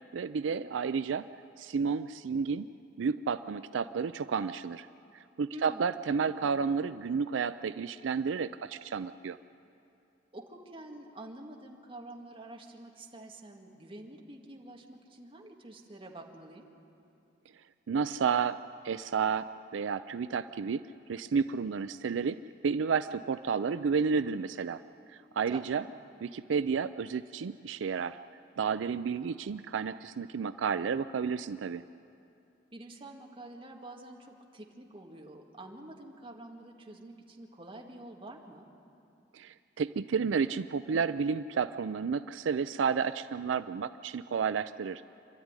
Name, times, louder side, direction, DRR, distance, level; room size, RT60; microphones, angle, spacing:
voice 1, 0.1-1.3 1.6-2.7 3.0-4.9 5.1-9.4 17.9-18.6 18.8-24.8 25.4-25.8 26.2-28.2 28.6-31.8 39.3-45.0, right 6 dB, 85° right, 12 dB, 0.4 m, -31 dB
voice 2, 5.5-6.5 10.3-16.7 25.5-25.9 32.7-38.7, right 1 dB, 30° right, 0 dB, 1.9 m, -48 dB
26.5 x 12.5 x 9.7 m, 2.7 s
head